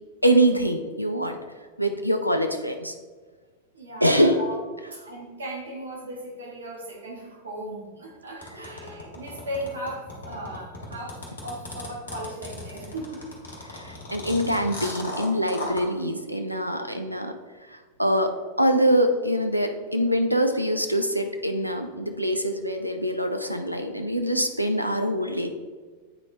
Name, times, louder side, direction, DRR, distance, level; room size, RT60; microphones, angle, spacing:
voice 1, 0.2-1.4 1.8-2.9 4.0-4.4 8.6-8.7 13.8-17.4 18.0-25.5, equal, 90° right, 6 dB, 0.5 m, -24 dB
voice 2, 3.7-4.6 4.9-13.2 16.5-16.8, right 1 dB, 70° right, -1 dB, 1.6 m, -37 dB
sound 1, 8.4-15.8, left 2 dB, 70° left, 1.6 m, -36 dB
8.6 x 4.3 x 3.3 m, 1.4 s
figure-of-eight pair, 90°, 0 cm